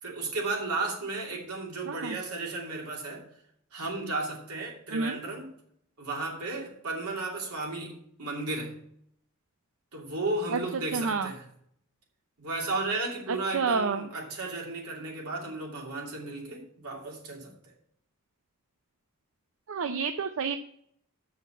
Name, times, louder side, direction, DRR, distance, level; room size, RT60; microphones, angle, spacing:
voice 1, 0.0-3.2 3.7-5.5 6.0-8.8 9.9-11.5 12.4-17.7, right 3 dB, 85° right, -1 dB, 2.7 m, -34 dB
voice 2, 1.9-2.2 4.9-5.2 10.5-10.6 10.9-11.3 13.5-14.1 19.7-20.6, right 5 dB, 60° right, 8 dB, 0.5 m, -29 dB
6.8 x 6.4 x 7.1 m, 0.69 s
head